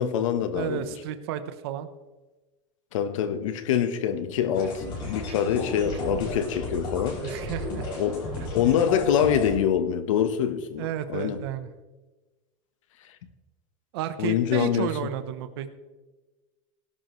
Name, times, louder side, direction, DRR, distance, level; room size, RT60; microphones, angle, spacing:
voice 1, 0.0-0.9 2.9-7.2 8.0-8.3 8.5-11.4 14.2-14.9, left 9 dB, 75° left, 1.3 m, -25 dB
voice 2, 0.5-1.9 7.2-7.9 10.8-11.7 13.9-15.7, right 10 dB, 50° right, 1.1 m, -32 dB
sound 1, 4.5-9.6, left 2 dB, 30° left, 5.3 m, -34 dB
18.0 x 11.5 x 3.3 m
supercardioid pair, 180°, 17 cm